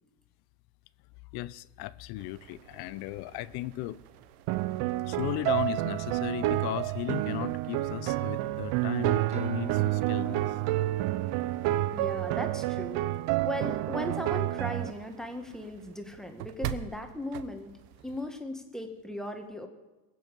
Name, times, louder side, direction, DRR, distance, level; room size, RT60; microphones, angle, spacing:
voice 1, 1.3-4.0 5.0-10.6, left 15 dB, 55° left, 0.6 m, -36 dB
sound 1, 2.1-18.4, right 12 dB, 85° right, 0.9 m, -47 dB
sound 2, 4.5-14.9, right 16 dB, 60° right, 0.6 m, -29 dB
sound 3, 9.3-13.1, right 5 dB, 15° right, 0.6 m, -44 dB
voice 2, 11.9-17.7 18.0-19.7, left 1 dB, ahead, 1.7 m, -37 dB
21.0 x 7.8 x 5.4 m
supercardioid pair, 105°, 45 cm